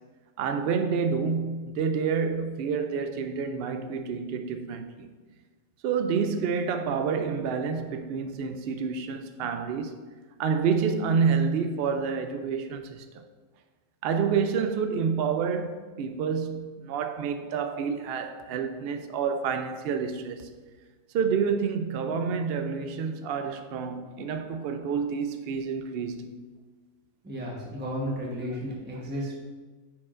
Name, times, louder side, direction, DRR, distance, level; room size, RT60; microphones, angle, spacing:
voice 1, 0.4-5.1 5.8-9.9 10.4-13.2 14.0-20.5 21.1-26.5, right 6 dB, 70° right, 0.5 m, -28 dB
voice 2, 27.2-29.3, equal, 10° right, 1.0 m, -33 dB
9.6 x 4.7 x 2.5 m
omnidirectional pair, 1.5 m